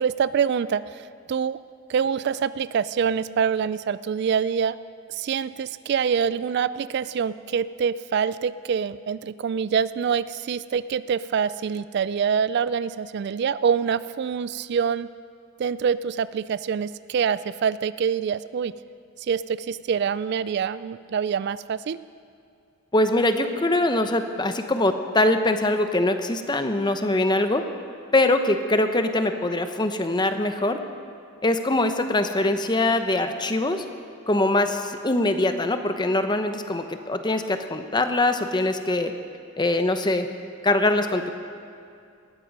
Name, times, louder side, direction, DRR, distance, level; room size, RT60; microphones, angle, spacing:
voice 1, 0.0-1.6 1.9-4.8 5.1-15.1 15.6-18.7 19.2-22.0, right 7 dB, 50° right, 16 dB, 0.3 m, -25 dB
voice 2, 22.9-27.6 28.1-30.8 31.4-33.8 34.3-39.1 39.6-40.3 40.6-41.3, left 2 dB, 20° left, 8 dB, 0.8 m, -23 dB
19.0 x 14.0 x 5.3 m, 2.4 s
head